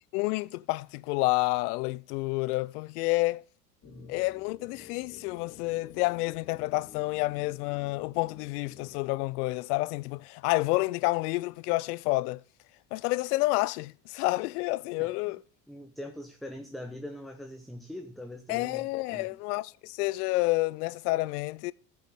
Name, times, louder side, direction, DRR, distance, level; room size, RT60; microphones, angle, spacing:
voice 1, 0.1-3.4 4.1-12.4 12.9-15.4 18.5-21.7, left 21 dB, 75° left, 0.5 m, -29 dB
sound 1, 3.8-9.0, left 6 dB, 35° left, 2.9 m, -52 dB
voice 2, 3.8-4.2 15.0-15.3 15.7-19.4, left 1 dB, ahead, 1.0 m, -43 dB
14.0 x 7.7 x 3.6 m
hypercardioid pair, 75°, 46 cm